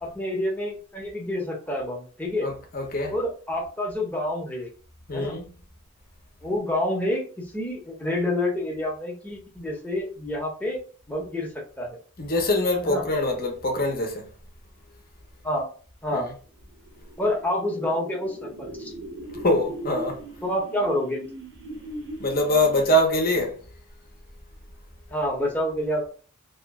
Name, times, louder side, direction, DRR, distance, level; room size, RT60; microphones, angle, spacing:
voice 1, 0.0-2.5 3.1-4.7 5.1-5.4 6.4-10.8 11.1-11.5 11.8-12.0 12.8-13.0 15.4-15.7 16.0-16.3 17.2-18.9 20.4-21.2 25.1-26.1, left 1 dB, 5° left, 0.9 m, -28 dB
voice 2, 2.4-3.1 5.1-5.5 12.2-14.3 16.1-16.3 19.4-20.2 22.2-23.5, left 1 dB, 45° left, 0.9 m, -24 dB
sound 1, 16.7-23.2, right 1 dB, 60° right, 0.9 m, -40 dB
3.0 x 2.9 x 3.6 m
head